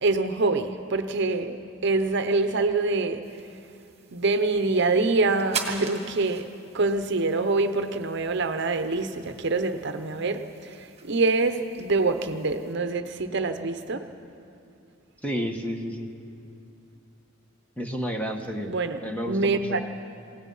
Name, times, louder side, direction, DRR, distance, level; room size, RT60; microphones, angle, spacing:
voice 1, 0.0-3.2 4.1-6.5 6.7-14.0 18.7-19.0 19.3-19.8, right 3 dB, 55° right, 9 dB, 0.8 m, -25 dB
sound 1, 3.2-12.7, right 5 dB, 30° right, 1.8 m, -42 dB
voice 2, 15.2-16.1 17.8-18.7 19.0-19.8, equal, 5° left, 3 dB, 1.3 m, -31 dB
27.5 x 17.5 x 5.5 m, 2.5 s
head